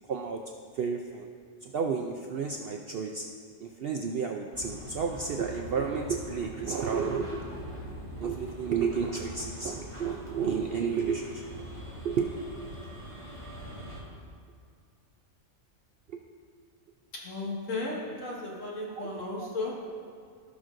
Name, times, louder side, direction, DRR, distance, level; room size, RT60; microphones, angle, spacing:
voice 1, 0.1-0.4 0.7-1.3 1.6-3.2 3.6-7.4 7.9-11.4 12.0-12.3 16.1-16.2 19.0-19.5, right 6 dB, 65° right, 3 dB, 0.6 m, -31 dB
sound 1, 4.5-14.0, equal, 20° right, 2.3 m, -43 dB
voice 2, 17.1-19.7, left 2 dB, 65° left, -4 dB, 2.0 m, -35 dB
16.0 x 6.1 x 2.6 m, 2.1 s
omnidirectional pair, 1.4 m